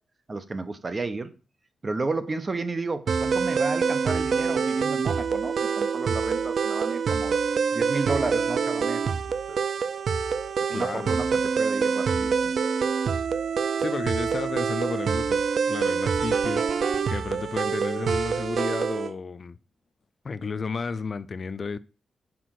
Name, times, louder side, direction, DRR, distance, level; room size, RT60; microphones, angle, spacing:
voice 1, 0.3-1.3 1.8-7.4 7.7-9.6 10.7-12.6, right 3 dB, 30° right, 0.9 m, -32 dB
sound 1, 3.1-19.1, right 5 dB, 60° right, 0.5 m, -26 dB
voice 2, 10.7-11.1 13.8-19.6 20.2-21.8, left 4 dB, 40° left, 0.4 m, -33 dB
6.0 x 5.0 x 6.3 m
wide cardioid pair, 110°, 0 cm